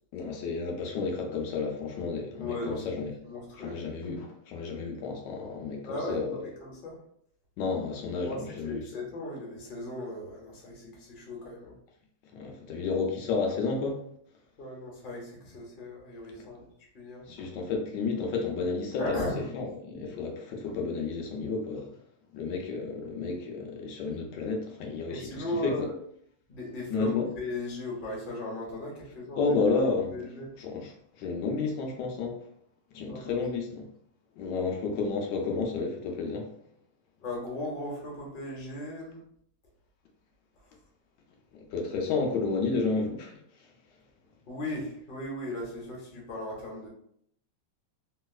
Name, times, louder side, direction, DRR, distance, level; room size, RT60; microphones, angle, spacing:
voice 1, 0.1-3.1 3.6-6.4 7.6-8.8 12.3-14.0 17.3-19.2 19.5-21.9 22.3-25.9 26.9-27.2 29.4-30.1 30.6-30.9 31.2-32.4 32.9-33.8 34.4-36.5 41.7-43.4, left 4 dB, 80° left, 2 dB, 1.2 m, -31 dB
voice 2, 2.4-3.8 5.8-7.0 8.2-11.7 14.6-16.7 16.9-17.2 19.0-19.6 25.1-25.9 26.5-29.4 30.1-30.5 33.0-33.4 37.2-39.2 44.5-46.9, left 1 dB, 40° left, -3 dB, 0.8 m, -37 dB
3.1 x 2.8 x 2.3 m, 0.68 s
omnidirectional pair, 1.9 m